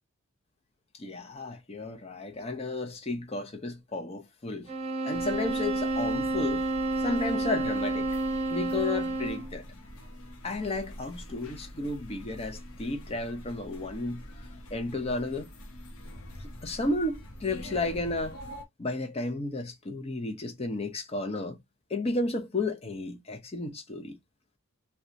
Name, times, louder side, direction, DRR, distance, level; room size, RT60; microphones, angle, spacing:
voice 1, 1.0-4.7 5.0-6.7 7.0-8.1 8.5-9.6 10.4-14.2 14.7-15.5 16.6-18.4 18.8-21.6 21.9-24.2, left 2 dB, 30° left, 0.5 m, -33 dB
sound 1, 4.7-9.6, right 2 dB, 30° right, 0.5 m, -30 dB
sound 2, 5.1-18.6, equal, 80° left, 0.7 m, -45 dB
2.6 x 2.3 x 2.5 m
head